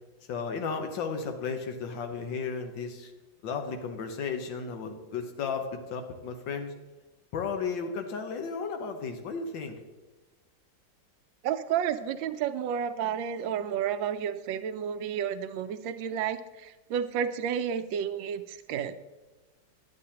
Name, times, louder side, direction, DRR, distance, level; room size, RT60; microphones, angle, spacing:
voice 1, 0.3-3.1 3.4-6.7 7.3-9.8, left 5 dB, 80° left, 6 dB, 1.6 m, -34 dB
voice 2, 11.4-19.0, right 8 dB, 85° right, 10 dB, 1.3 m, -31 dB
9.8 x 9.2 x 2.8 m, 1.2 s
omnidirectional pair, 2.0 m